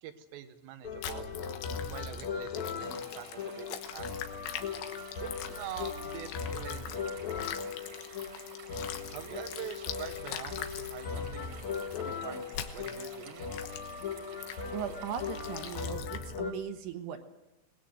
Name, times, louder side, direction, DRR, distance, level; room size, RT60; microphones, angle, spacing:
voice 1, 0.0-1.3 1.9-4.1 5.0-7.1 9.1-11.6 12.0-13.5, right 10 dB, 85° right, 9 dB, 3.9 m, -45 dB
sound 1, 0.8-16.5, left 6 dB, 60° left, 1.9 m, -39 dB
sound 2, 1.0-7.0 7.3-11.0 11.6-12.0 12.5-13.2 13.5-14.0 14.4-14.6 15.1-16.4, left 10 dB, 80° left, 3.6 m, -43 dB
sound 3, 2.8-15.9, right 5 dB, 45° right, 2.7 m, -52 dB
voice 2, 14.7-17.3, right 9 dB, 70° right, 6 dB, 3.0 m, -39 dB
23.5 x 19.5 x 7.8 m, 1.0 s
omnidirectional pair, 5.7 m